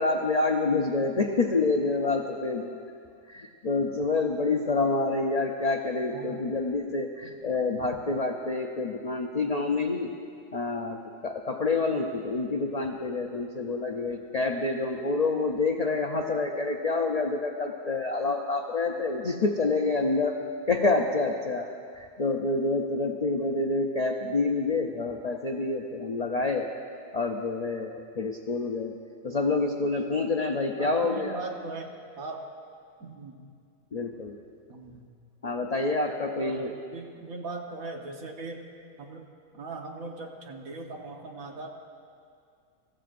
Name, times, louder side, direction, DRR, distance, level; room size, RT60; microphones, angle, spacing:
voice 1, 0.0-2.8 3.3-10.1 10.5-20.4 20.7-21.7 22.0-26.7 27.1-28.9 29.2-31.4 33.9-34.4 35.4-36.7, left 3 dB, 60° left, 2 dB, 0.4 m, -27 dB
voice 2, 6.1-6.4 30.8-32.4 33.0-33.4 34.7-35.0 36.4-38.7 39.0-39.3 39.5-41.7, right 3 dB, 65° right, 1 dB, 1.6 m, -39 dB
24.0 x 14.5 x 2.5 m, 2.3 s
omnidirectional pair, 1.6 m